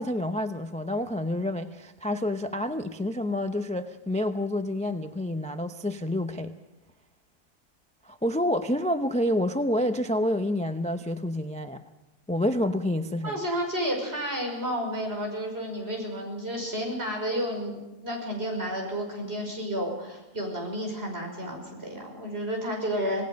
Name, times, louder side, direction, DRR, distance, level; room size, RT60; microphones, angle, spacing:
voice 1, 0.0-6.5 8.0-11.8 12.3-13.4, left 1 dB, 10° left, 8 dB, 0.3 m, -28 dB
voice 2, 13.2-23.2, equal, 40° right, 1 dB, 5.9 m, -31 dB
26.5 x 18.5 x 5.3 m, 0.99 s
omnidirectional pair, 1.6 m